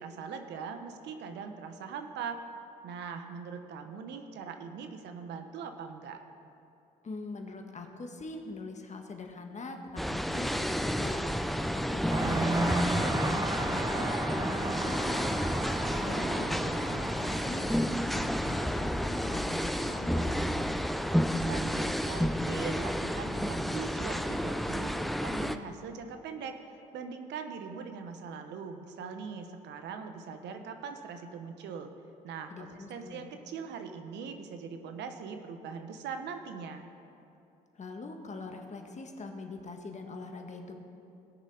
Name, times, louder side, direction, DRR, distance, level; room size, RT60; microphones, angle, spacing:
voice 1, 0.0-2.4 2.8-6.2 21.3-26.6 26.9-31.9 32.2-36.9, right 6 dB, 70° right, 7 dB, 1.0 m, -41 dB
voice 2, 7.0-11.3 11.7-15.4 16.0-20.4 32.5-33.3 37.7-40.8, left 3 dB, 40° left, 4 dB, 1.6 m, -42 dB
sound 1, 10.0-25.6, equal, ahead, 0.6 m, -31 dB
sound 2, 12.1-20.4, right 2 dB, 20° right, 1.1 m, -34 dB
18.0 x 6.6 x 4.9 m, 2.8 s
hypercardioid pair, 55°, 19 cm